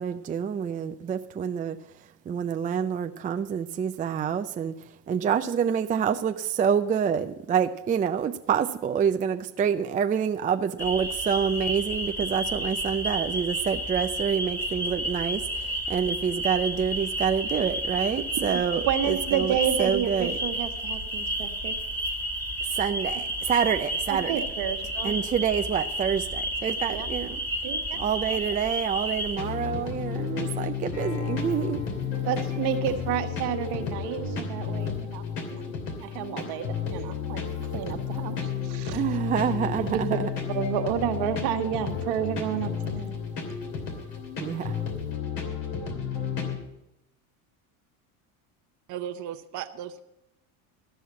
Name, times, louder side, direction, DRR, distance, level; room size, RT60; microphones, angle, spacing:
voice 1, 0.0-1.8 2.3-4.7 5.1-18.8 19.1-20.3 22.7-24.4 25.0-27.4 28.0-31.8 38.9-40.3 44.4-44.8, right 7 dB, 20° right, 7 dB, 0.4 m, -27 dB
sound 1, 10.8-29.4, right 1 dB, 5° left, 1.8 m, -31 dB
voice 2, 18.9-21.7 24.1-25.1 26.6-27.1 27.6-28.0 32.1-35.2 35.5-35.7 36.0-37.4 37.7-39.0 39.8-40.0 40.5-43.2, right 9 dB, 65° right, 6 dB, 1.4 m, -30 dB
sound 2, 29.4-46.6, left 6 dB, 60° left, 2.9 m, -32 dB
Acoustic guitar, 30.9-36.1, left 3 dB, 85° left, 5.8 m, -45 dB
voice 3, 48.9-50.0, right 10 dB, 45° right, 6 dB, 0.8 m, -36 dB
13.5 x 5.6 x 8.4 m, 0.87 s
supercardioid pair, 95°, 43 cm